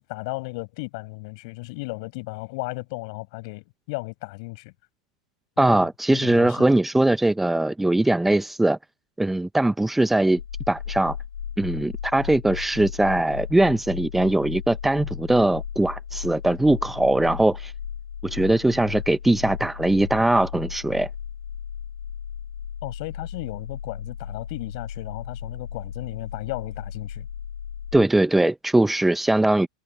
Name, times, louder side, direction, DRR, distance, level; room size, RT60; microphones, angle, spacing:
voice 1, 0.0-4.7 5.6-6.7 22.8-27.3, left 27 dB, 55° left, 7.5 m, -35 dB
voice 2, 5.6-8.8 9.2-10.4 10.7-11.2 11.6-17.7 18.2-21.1 27.9-29.7, right 1 dB, 5° right, 1.1 m, -21 dB
sound 1, 10.4-28.1, left 8 dB, 80° left, 1.8 m, -35 dB
hypercardioid pair, 95°, 3 cm